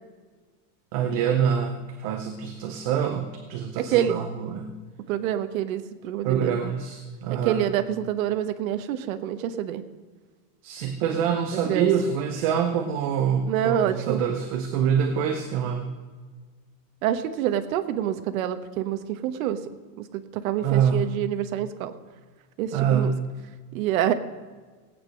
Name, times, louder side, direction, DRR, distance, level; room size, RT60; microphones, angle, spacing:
voice 1, 0.9-4.7 6.2-7.6 10.6-16.0 20.6-21.0 22.7-23.3, right 7 dB, 25° right, 6 dB, 0.4 m, -25 dB
voice 2, 3.8-4.1 5.1-6.6 7.3-9.8 11.5-11.9 13.5-14.2 17.0-19.6 20.0-21.9 22.6-23.1 23.7-24.1, right 11 dB, 55° right, 9 dB, 1.2 m, -27 dB
17.0 x 9.0 x 6.3 m, 1.4 s
supercardioid pair, 175°, 48 cm